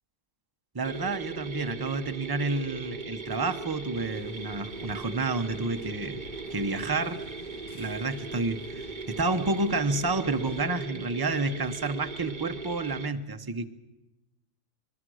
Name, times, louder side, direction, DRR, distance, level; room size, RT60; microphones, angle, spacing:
voice 1, 0.7-6.2 6.5-7.2 7.8-13.7, right 3 dB, 20° right, 8 dB, 0.9 m, -30 dB
sound 1, 0.8-13.1, right 4 dB, 35° right, 1.1 m, -39 dB
sound 2, 3.9-10.6, left 3 dB, 40° left, 1.3 m, -49 dB
25.5 x 22.0 x 6.4 m, 1.0 s
omnidirectional pair, 1.4 m